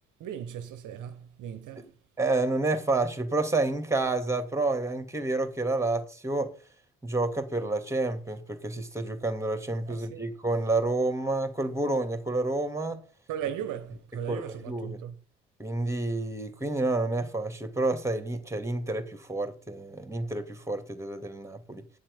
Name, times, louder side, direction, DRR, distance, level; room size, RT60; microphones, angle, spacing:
voice 1, 0.2-1.9 9.9-10.2 13.3-15.2, right 9 dB, 60° right, 1.1 m, -37 dB
voice 2, 2.2-6.5 7.0-13.0 14.3-15.0 15.6-21.8, right 2 dB, 10° right, 2.6 m, -29 dB
9.4 x 7.4 x 7.0 m
hypercardioid pair, 50°, 35 cm